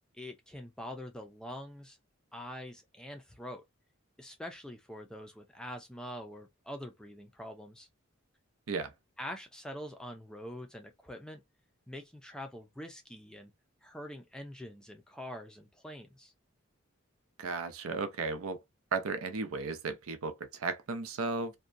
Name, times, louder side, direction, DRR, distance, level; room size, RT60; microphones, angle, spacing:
voice 1, 0.1-2.0 2.3-3.6 4.2-7.9 9.2-11.4 11.9-13.5 13.8-16.3, equal, 5° left, 0.4 m, -44 dB
voice 2, 17.4-18.6 18.9-21.5, right 4 dB, 85° right, 0.6 m, -35 dB
2.7 x 2.2 x 2.5 m
head